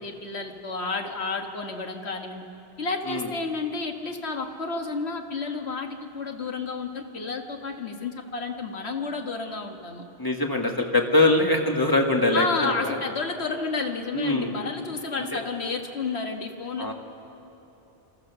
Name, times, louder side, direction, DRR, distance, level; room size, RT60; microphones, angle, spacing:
voice 1, 0.0-2.4 2.8-10.0 12.3-16.9, left 4 dB, 80° left, 4 dB, 1.7 m, -31 dB
voice 2, 10.2-13.0 14.1-14.5 15.2-15.4 16.8-16.9, left 2 dB, 20° left, 1 dB, 1.7 m, -23 dB
28.0 x 13.5 x 6.9 m, 2.9 s
omnidirectional pair, 1.1 m